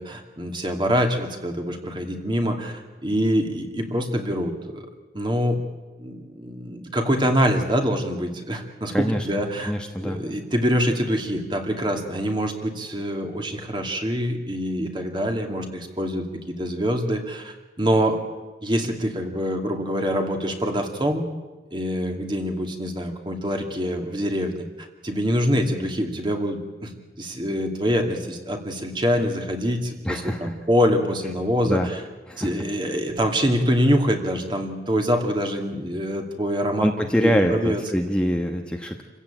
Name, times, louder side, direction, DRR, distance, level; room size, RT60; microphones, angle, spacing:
voice 1, 0.0-4.9 5.1-5.6 6.0-9.7 10.0-16.2 16.6-18.2 18.6-21.2 21.7-26.9 27.2-32.0 32.4-37.8, equal, 25° right, 3 dB, 2.5 m, -25 dB
voice 2, 8.9-9.3 9.6-10.2 30.0-30.5 31.6-31.9 32.3-32.5 36.8-39.0, equal, 5° left, 2 dB, 1.2 m, -24 dB
27.5 x 15.5 x 9.0 m, 1.2 s
head